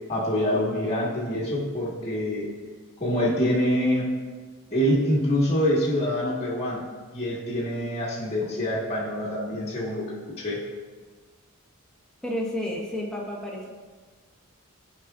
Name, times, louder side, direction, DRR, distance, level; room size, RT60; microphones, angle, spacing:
voice 1, 0.1-2.5 3.0-4.1 4.7-6.9 7.1-10.6, equal, 25° left, -10 dB, 1.4 m, -25 dB
voice 2, 12.2-13.7, left 1 dB, 5° left, -3 dB, 1.2 m, -31 dB
14.5 x 5.1 x 2.4 m, 1.5 s
head